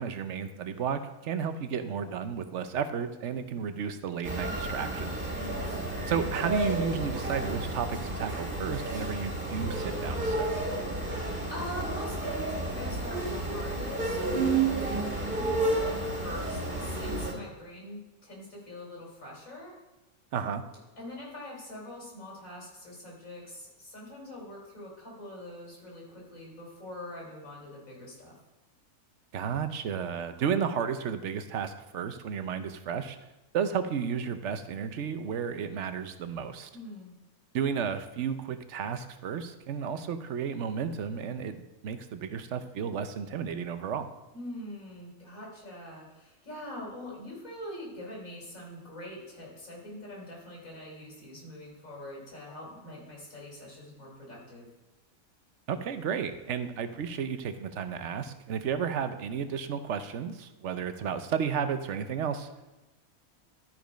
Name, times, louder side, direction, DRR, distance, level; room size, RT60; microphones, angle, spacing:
voice 1, 0.0-5.2 6.1-10.7 20.3-20.6 29.3-33.2 33.5-36.7 37.5-44.1 55.7-62.5, right 7 dB, 60° right, 10 dB, 0.9 m, -33 dB
sound 1, 4.2-17.3, right 2 dB, 35° right, 2.3 m, -31 dB
voice 2, 5.2-5.8 11.5-19.8 21.0-28.4 36.7-37.1 44.3-54.7, left 1 dB, 65° left, -3 dB, 3.8 m, -43 dB
12.5 x 5.1 x 5.1 m, 1.1 s
omnidirectional pair, 1.5 m